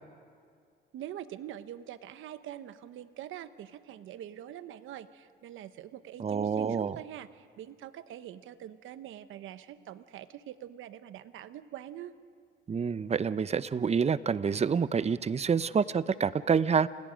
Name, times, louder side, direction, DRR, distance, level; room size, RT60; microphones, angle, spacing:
voice 1, 0.9-12.1, right 11 dB, 80° right, 12 dB, 1.0 m, -44 dB
voice 2, 6.2-7.0 12.7-16.9, right 6 dB, 30° right, 16 dB, 0.7 m, -27 dB
30.0 x 28.0 x 5.2 m, 2.1 s
cardioid pair, 90°, 20 cm